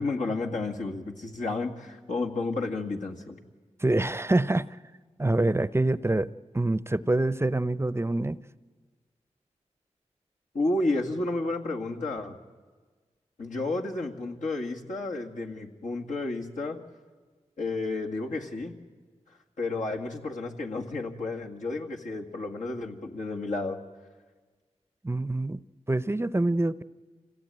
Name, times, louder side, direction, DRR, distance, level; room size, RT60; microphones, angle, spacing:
voice 1, 0.0-3.4 10.5-12.4 13.4-16.8 17.6-18.7 19.6-23.8, left 2 dB, 85° left, 0 dB, 2.1 m, -31 dB
voice 2, 3.8-4.7 5.2-6.3 6.5-8.4 25.0-25.6 25.9-26.8, right 2 dB, 20° right, 17 dB, 0.6 m, -25 dB
24.5 x 16.5 x 9.1 m, 1.4 s
cardioid pair, 45°, 13 cm